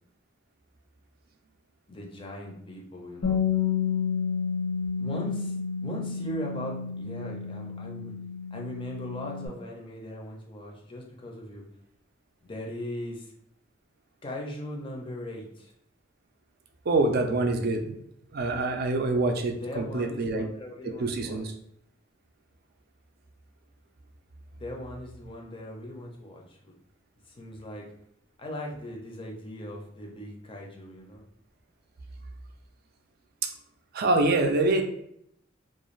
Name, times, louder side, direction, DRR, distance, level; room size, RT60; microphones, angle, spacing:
voice 1, 1.9-3.5 5.0-5.5 5.8-8.1 8.5-11.7 12.4-13.3 14.2-15.7 19.5-21.4 24.5-26.7 27.3-27.9 28.4-31.2, left 1 dB, 25° left, -1 dB, 0.5 m, -39 dB
Bass guitar, 3.2-9.5, left 6 dB, 65° left, 0.7 m, -30 dB
voice 2, 16.9-18.0 18.3-20.5 21.0-21.5 33.9-34.8, right 2 dB, 50° right, 3 dB, 0.4 m, -25 dB
2.5 x 2.3 x 3.1 m, 0.73 s
head